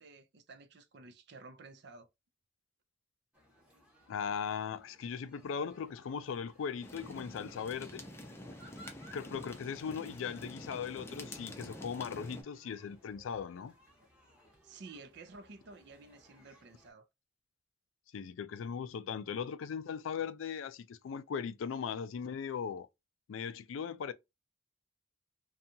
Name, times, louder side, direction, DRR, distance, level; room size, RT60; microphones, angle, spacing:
voice 1, 0.0-2.1 14.6-17.1, right 3 dB, 60° right, 0.5 m, -52 dB
sound 1, 3.3-16.9, equal, 5° right, 0.9 m, -62 dB
voice 2, 4.1-8.0 9.1-13.7 18.1-22.9 23.3-24.1, left 7 dB, 80° left, 0.3 m, -38 dB
sound 2, 6.8-12.4, left 1 dB, 15° left, 0.5 m, -47 dB
2.7 x 2.3 x 2.6 m
head